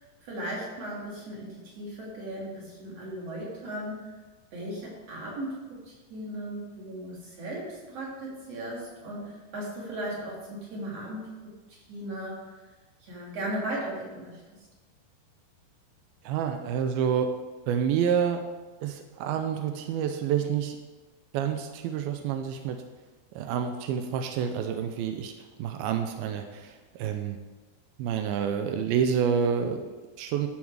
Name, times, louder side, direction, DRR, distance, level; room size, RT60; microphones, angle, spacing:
voice 1, 0.2-4.1 4.5-12.4 13.1-14.4, right 1 dB, 45° right, -4 dB, 3.6 m, -37 dB
voice 2, 16.3-17.3 17.7-18.4 18.8-20.8 21.3-22.8 23.4-25.3 25.6-27.4 28.0-30.5, right 8 dB, 85° right, 6 dB, 2.5 m, -28 dB
12.5 x 7.3 x 4.9 m, 1.3 s
omnidirectional pair, 4.3 m